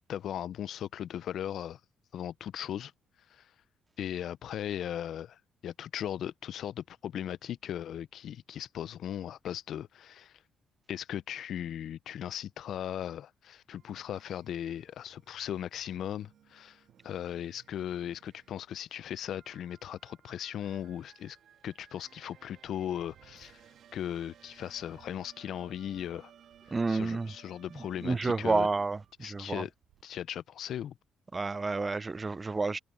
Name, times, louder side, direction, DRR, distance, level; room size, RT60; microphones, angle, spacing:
voice 1, 0.1-1.8 2.1-2.9 3.3-3.5 4.0-10.4 10.9-21.4 21.6-23.6 23.9-26.3 26.9-28.7 29.2-29.7 30.0-31.0, left 10 dB, 70° left, 0.4 m, -38 dB
sound 1, 13.7-29.1, right 9 dB, 70° right, 1.9 m, -60 dB
sound 2, 22.5-27.3 27.6-30.0, right 13 dB, 85° right, 5.2 m, -66 dB
voice 2, 26.7-27.3 28.0-29.6 31.3-32.8, right 3 dB, 25° right, 0.4 m, -30 dB
cardioid pair, 90°, 0 cm